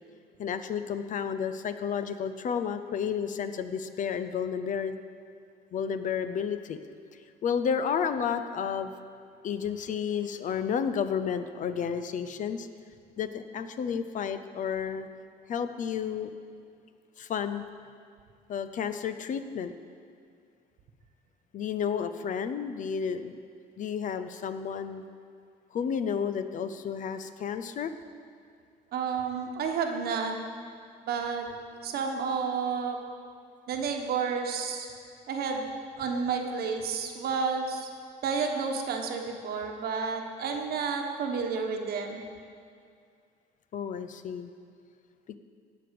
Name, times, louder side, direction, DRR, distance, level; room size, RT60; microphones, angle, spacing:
voice 1, 0.4-5.0 5.7-6.8 7.4-8.9 9.4-12.7 13.2-15.1 15.5-16.3 17.2-17.6 18.5-19.7 21.5-23.4 23.8-25.0 25.7-27.9 43.7-44.5, left 7 dB, 50° left, 10 dB, 0.6 m, -31 dB
voice 2, 28.9-30.3 31.0-31.5 31.8-33.0 33.7-34.9 35.3-35.7 36.0-37.9 38.2-42.2, right 5 dB, 65° right, 3 dB, 1.3 m, -30 dB
17.0 x 6.0 x 5.3 m, 2.3 s
cardioid pair, 110°, 17 cm